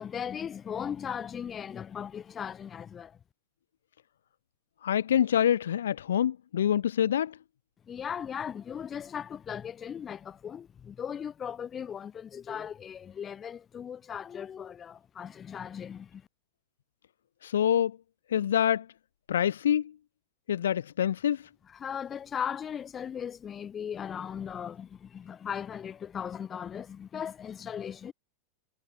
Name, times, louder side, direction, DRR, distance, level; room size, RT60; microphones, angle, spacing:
voice 1, 0.0-3.2 7.9-16.3 21.7-28.1, left 8 dB, 25° left, 1.4 m, -38 dB
voice 2, 4.8-7.4 17.4-18.0 18.3-18.9 19.3-19.9 20.5-21.4, left 9 dB, 65° left, 0.8 m, -26 dB
figure-of-eight pair, 90°, 0 cm